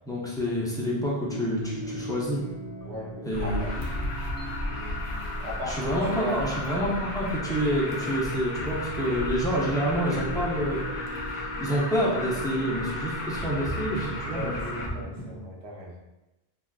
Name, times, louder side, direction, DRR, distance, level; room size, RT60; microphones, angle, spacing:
voice 1, 0.1-2.4 3.2-3.8 5.6-14.8, equal, 5° left, -6 dB, 0.4 m, -28 dB
sound 1, 1.2-15.4, right 1 dB, 20° right, 1.1 m, -38 dB
voice 2, 2.8-3.7 5.4-6.6 14.2-16.0, equal, 80° right, -2 dB, 1.0 m, -36 dB
Alarm, 3.3-14.9, left 2 dB, 70° left, 0.8 m, -34 dB
3.4 x 2.5 x 2.3 m, 1.0 s
omnidirectional pair, 1.1 m